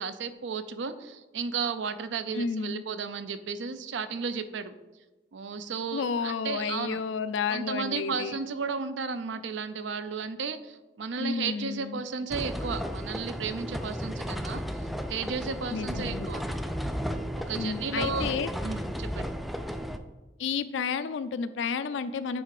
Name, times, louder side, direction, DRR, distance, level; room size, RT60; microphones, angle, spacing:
voice 1, 0.0-4.7 5.3-7.0 7.5-14.6 15.1-16.4 17.5-18.3 18.6-19.4, right 5 dB, 80° right, 12 dB, 0.5 m, -34 dB
voice 2, 2.3-2.8 5.9-8.4 11.2-12.0 15.7-16.3 17.5-18.5 20.4-22.4, left 5 dB, 85° left, 12 dB, 0.4 m, -31 dB
sound 1, 12.3-20.0, equal, ahead, 0.3 m, -34 dB
9.3 x 3.3 x 4.8 m, 1.2 s
head